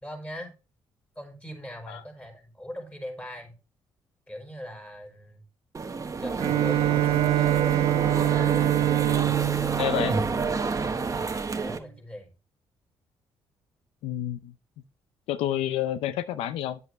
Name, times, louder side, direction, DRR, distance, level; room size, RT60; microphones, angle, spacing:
voice 1, 0.0-0.5 1.1-3.5 4.3-5.4 6.2-10.2 10.7-10.8 11.6-12.3, equal, 15° left, 4.8 m, -41 dB
sound 1, 5.7-11.8, right 4 dB, 35° right, 1.2 m, -29 dB
Bowed string instrument, 6.4-11.1, right 15 dB, 75° right, 0.4 m, -25 dB
voice 2, 9.8-10.1 14.0-14.5 15.3-16.8, left 12 dB, 85° left, 0.5 m, -29 dB
9.5 x 7.9 x 3.2 m
supercardioid pair, 65°, 10 cm